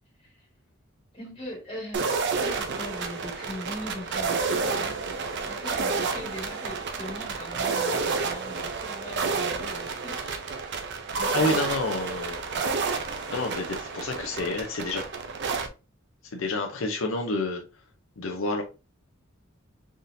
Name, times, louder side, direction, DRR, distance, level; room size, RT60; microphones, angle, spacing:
voice 1, 1.1-10.4 10.9-11.6 12.0-12.2 12.9-13.0, left 1 dB, 25° left, 1.8 m, -41 dB
sound 1, 1.9-15.7, right 4 dB, 55° right, 0.6 m, -30 dB
voice 2, 11.3-12.4 13.3-15.0 16.3-17.6 18.2-18.6, left 2 dB, 70° left, 0.7 m, -29 dB
4.1 x 3.6 x 2.6 m
head